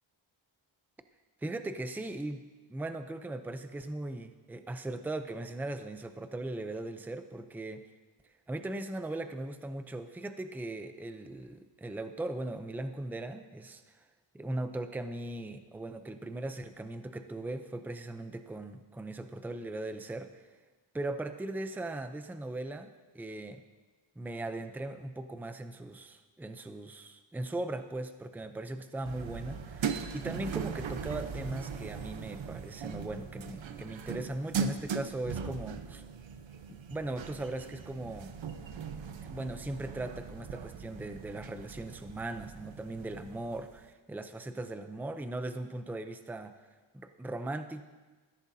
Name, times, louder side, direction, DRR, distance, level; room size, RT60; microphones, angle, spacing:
voice 1, 1.4-2.4 2.7-7.8 8.5-14.1 14.3-20.4 20.9-23.6 24.2-36.0 36.7-38.3 39.2-46.6 46.9-47.8, right 2 dB, 5° right, 8 dB, 0.5 m, -39 dB
sound 1, 29.0-43.8, right 6 dB, 65° right, 0.9 m, -39 dB
20.5 x 15.0 x 2.7 m, 1.3 s
wide cardioid pair, 155°, 48 cm